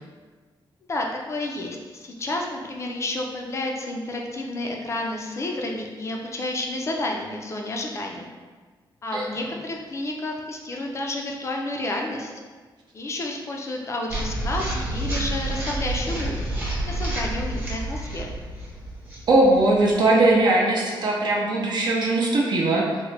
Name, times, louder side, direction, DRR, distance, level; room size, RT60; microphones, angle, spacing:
voice 1, 0.9-8.3 9.0-12.3 12.9-16.4 16.8-18.3, left 2 dB, 35° left, 0 dB, 0.3 m, -30 dB
sound 1, 14.1-20.3, right 1 dB, 20° right, 0.9 m, -29 dB
voice 2, 19.3-23.0, right 2 dB, 55° right, -3 dB, 0.5 m, -20 dB
3.6 x 2.0 x 3.2 m, 1.4 s
wide cardioid pair, 155°, 9 cm